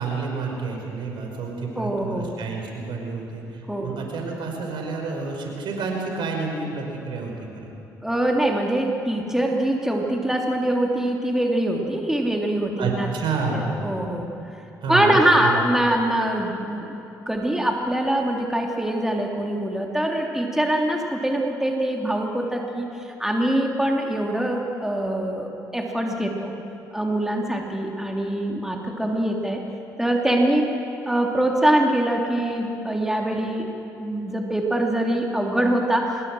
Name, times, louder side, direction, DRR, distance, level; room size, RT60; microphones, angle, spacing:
voice 1, 0.0-7.7 12.8-13.7 14.8-15.6, right 4 dB, 60° right, 1 dB, 5.2 m, -29 dB
voice 2, 1.8-2.3 3.7-3.9 8.0-13.1 13.5-14.3 14.9-22.9 23.2-26.5 26.9-29.6 30.0-30.7 31.1-33.7 34.0-36.2, right 1 dB, 5° right, 0 dB, 3.2 m, -23 dB
25.5 x 21.0 x 6.4 m, 3.0 s
hypercardioid pair, 45°, 9 cm